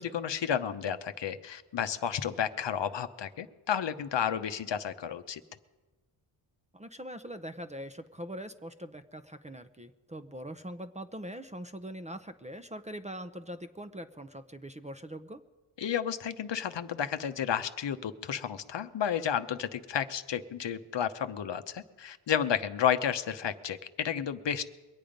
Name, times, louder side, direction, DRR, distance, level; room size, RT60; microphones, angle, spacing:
voice 1, 0.0-5.4 15.8-24.6, left 8 dB, 60° left, 10 dB, 0.9 m, -32 dB
voice 2, 6.7-15.4, equal, 15° right, 10 dB, 0.7 m, -42 dB
22.5 x 8.6 x 5.2 m, 1.2 s
cardioid pair, 65°, 49 cm